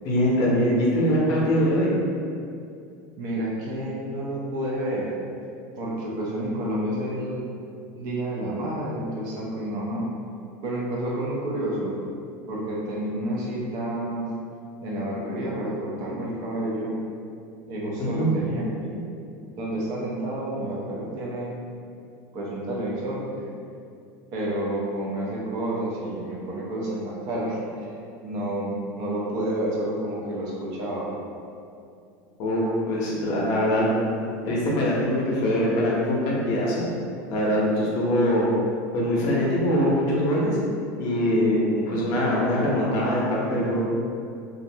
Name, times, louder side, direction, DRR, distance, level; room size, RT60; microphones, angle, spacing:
voice 1, 0.0-1.9 18.0-18.3 32.4-33.9 34.4-36.9 37.3-38.5 38.9-40.6 41.0-43.8, equal, 50° left, -5 dB, 0.6 m, -23 dB
voice 2, 3.2-5.1 5.8-7.4 8.0-10.1 10.6-12.0 12.5-14.3 14.8-17.0 17.7-19.0 19.6-21.5 22.3-23.3 24.3-27.9 28.2-31.2 41.8-42.1, right 1 dB, 50° right, -5 dB, 0.5 m, -29 dB
2.4 x 2.0 x 2.7 m, 2.5 s
supercardioid pair, 160°, 8 cm